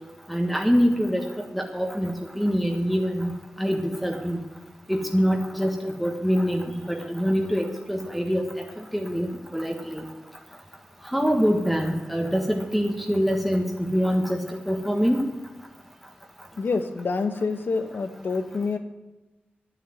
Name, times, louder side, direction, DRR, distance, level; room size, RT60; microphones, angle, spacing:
voice 1, 0.3-3.3 3.6-4.4 4.9-8.4 8.9-10.0 11.1-15.2, equal, ahead, 1 dB, 1.4 m, -25 dB
voice 2, 16.6-18.8, left 4 dB, 70° left, 8 dB, 1.1 m, -27 dB
9.9 x 9.7 x 8.0 m, 1.1 s
wide cardioid pair, 70°, 4 cm